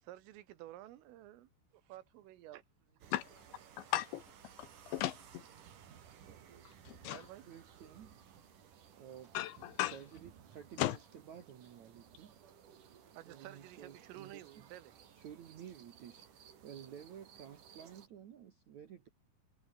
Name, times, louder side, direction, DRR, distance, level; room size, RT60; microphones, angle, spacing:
voice 1, 0.1-1.5 1.8-2.6 3.1-3.2 7.0-7.5 13.2-14.9, right 14 dB, 90° right, 4.1 m, -52 dB
sound 1, 3.0-18.1, right 8 dB, 50° right, 3.4 m, -59 dB
voice 2, 3.8-4.2 4.6-5.4 6.9-7.2 9.3-10.0 10.8-11.0, left 15 dB, 75° left, 3.1 m, -36 dB
voice 3, 7.4-8.2 9.0-9.3 9.6-11.0 11.3-12.4 13.2-14.7 15.1-19.1, right 9 dB, 70° right, 1.8 m, -53 dB
omnidirectional pair, 5.7 m